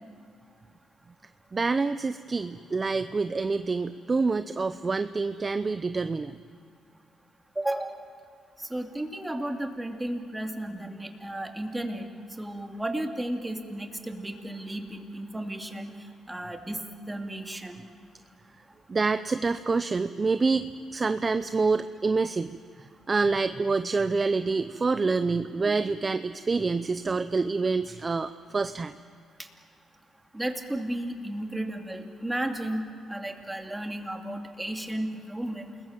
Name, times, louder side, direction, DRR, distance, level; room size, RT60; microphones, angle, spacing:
voice 1, 1.5-6.4 18.9-22.6 23.1-28.9, right 4 dB, 30° right, 11 dB, 0.6 m, -27 dB
voice 2, 7.6-8.0 8.6-12.1 12.4-16.0 16.3-16.8 17.1-17.8 29.4-29.5 30.3-35.7, right 1 dB, 10° right, 3 dB, 2.6 m, -33 dB
28.5 x 21.0 x 7.5 m, 2.2 s
cardioid pair, 90°, 0 cm